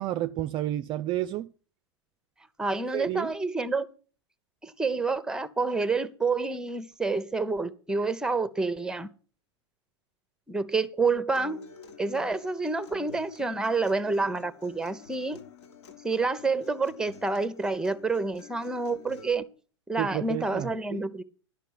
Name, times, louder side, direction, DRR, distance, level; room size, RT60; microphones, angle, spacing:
voice 1, 0.0-1.5 2.9-3.3 20.0-21.0, right 13 dB, 30° right, 0.4 m, -31 dB
voice 2, 2.6-3.9 4.6-9.1 10.5-11.7 12.0-15.4 16.0-19.4 19.9-21.2, right 3 dB, 5° right, 0.8 m, -28 dB
Acoustic guitar, 11.4-19.3, left 5 dB, 65° left, 1.8 m, -49 dB
11.0 x 5.6 x 7.8 m
figure-of-eight pair, 95°, 15 cm